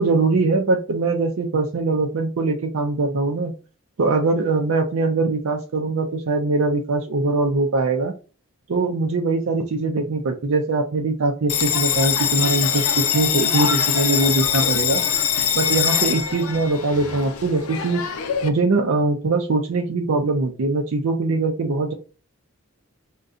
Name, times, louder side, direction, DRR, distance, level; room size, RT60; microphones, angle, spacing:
voice 1, 0.0-3.5 4.0-8.1 8.7-15.0 15.5-18.1 18.4-21.9, right 3 dB, 75° right, 3 dB, 0.5 m, -22 dB
Bell, 11.5-18.5, left 8 dB, 85° left, 0.5 m, -23 dB
3.6 x 2.2 x 2.5 m, 0.34 s
head